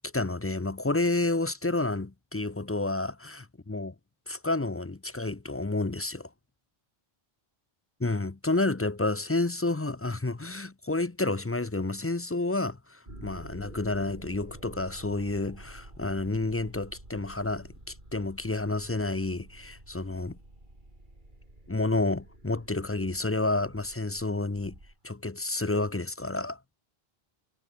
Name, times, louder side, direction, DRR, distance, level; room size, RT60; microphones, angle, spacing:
voice 1, 0.0-3.9 4.3-6.3 8.0-20.4 21.7-24.8 25.0-26.6, left 2 dB, 15° left, 0.5 m, -30 dB
sound 1, 13.1-25.0, right 1 dB, 50° right, 6.3 m, -49 dB
omnidirectional pair, 1.1 m